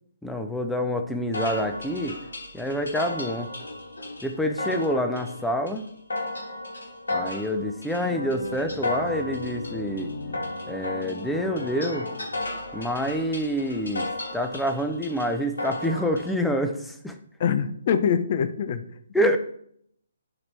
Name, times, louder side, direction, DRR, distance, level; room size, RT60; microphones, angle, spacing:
voice 1, 0.2-2.2 2.5-3.5 4.2-5.9 7.1-10.1 10.7-12.1 12.7-14.1 14.3-17.1 19.1-19.4, equal, 5° left, 6 dB, 0.6 m, -27 dB
sound 1, 1.3-16.3, left 2 dB, 85° left, 2.6 m, -34 dB
sound 2, 7.9-12.8, left 3 dB, 70° left, 1.2 m, -38 dB
voice 2, 17.4-18.9, left 7 dB, 45° left, 12 dB, 0.6 m, -24 dB
11.5 x 4.4 x 3.3 m, 0.67 s
hypercardioid pair, 145°, 0 cm